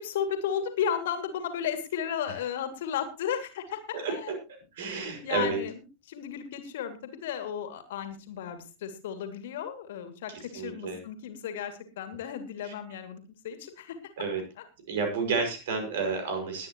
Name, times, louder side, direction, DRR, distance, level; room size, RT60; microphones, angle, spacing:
voice 1, 0.0-4.3 5.0-5.8 6.1-14.0, left 8 dB, 55° left, 8 dB, 2.6 m, -34 dB
voice 2, 4.7-5.6 10.3-11.0 12.6-12.7 14.2-14.4 14.9-16.7, right 4 dB, 55° right, 4 dB, 5.9 m, -31 dB
21.0 x 9.6 x 3.1 m, 0.29 s
figure-of-eight pair, 90°, 0 cm